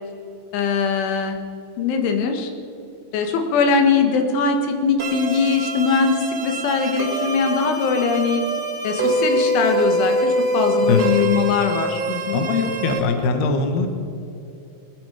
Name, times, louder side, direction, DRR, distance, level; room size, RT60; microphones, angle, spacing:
voice 1, 0.5-1.4 1.8-2.5 3.1-8.4 8.8-12.4, left 5 dB, 90° left, 4 dB, 4.0 m, -21 dB
sound 1, 5.0-13.0, right 1 dB, 50° right, 4.3 m, -24 dB
voice 2, 12.3-13.9, left 4 dB, 65° left, 6 dB, 3.2 m, -21 dB
20.0 x 14.5 x 5.0 m, 2.7 s
omnidirectional pair, 5.3 m